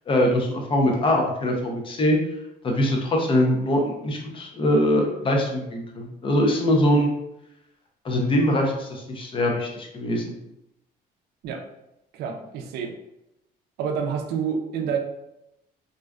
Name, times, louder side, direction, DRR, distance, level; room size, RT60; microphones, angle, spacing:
voice 1, 0.1-2.2 2.6-7.1 8.0-10.3, left 1 dB, 30° left, 1 dB, 0.6 m, -22 dB
voice 2, 12.1-13.0 13.8-15.0, right 6 dB, 70° right, 4 dB, 0.4 m, -28 dB
2.4 x 2.3 x 2.2 m, 0.85 s
cardioid pair, 110°, 17 cm